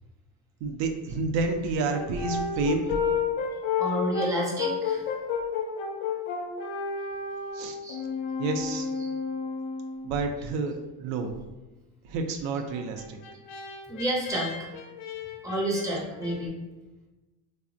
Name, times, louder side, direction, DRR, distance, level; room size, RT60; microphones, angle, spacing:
voice 1, 0.6-2.9 7.5-7.8 8.4-8.9 10.0-11.3 12.1-13.2, right 3 dB, 80° right, 5 dB, 0.5 m, -29 dB
Brass instrument, 1.9-10.2 12.7-16.4, left 5 dB, 85° left, 0.6 m, -31 dB
voice 2, 3.8-5.0 7.8-8.0 8.9-9.1 13.9-14.5 15.4-16.5, right 1 dB, 5° right, -3 dB, 0.5 m, -29 dB
3.2 x 2.0 x 2.5 m, 1.1 s
cardioid pair, 115°, 46 cm